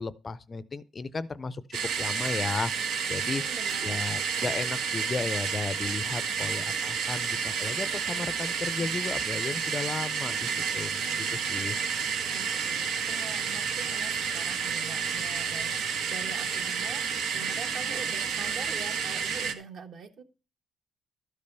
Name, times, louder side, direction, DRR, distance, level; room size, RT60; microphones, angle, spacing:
voice 1, 0.0-3.4 3.8-11.8, left 4 dB, 25° left, 0.5 m, -35 dB
sound 1, 1.7-19.5, right 6 dB, 80° right, 1.4 m, -30 dB
voice 2, 3.2-4.0 12.3-20.2, right 5 dB, 50° right, 1.4 m, -44 dB
13.0 x 5.4 x 6.8 m
cardioid pair, 160°, 0 cm